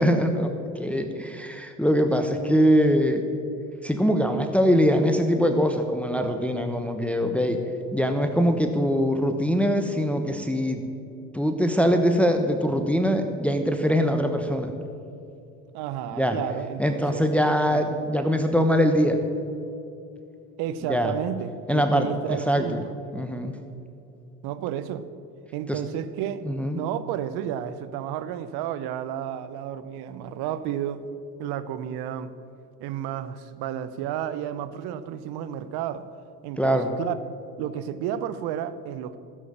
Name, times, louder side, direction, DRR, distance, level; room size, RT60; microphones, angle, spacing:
voice 1, 0.0-3.2 3.8-7.6 7.9-10.8 11.3-14.7 16.2-16.4 16.8-19.2 20.9-21.1 21.7-22.8 23.1-23.5 25.7-25.8 26.5-26.8 36.6-36.9, equal, 5° left, 6 dB, 1.1 m, -23 dB
voice 2, 15.7-17.2 17.7-18.0 20.6-23.0 24.4-25.1 25.5-26.5 26.8-31.0 31.4-32.3 32.8-36.1 36.4-37.1 37.6-39.2, right 10 dB, 65° right, 12 dB, 0.9 m, -32 dB
14.5 x 7.3 x 7.3 m, 2.7 s
hypercardioid pair, 60°, 42 cm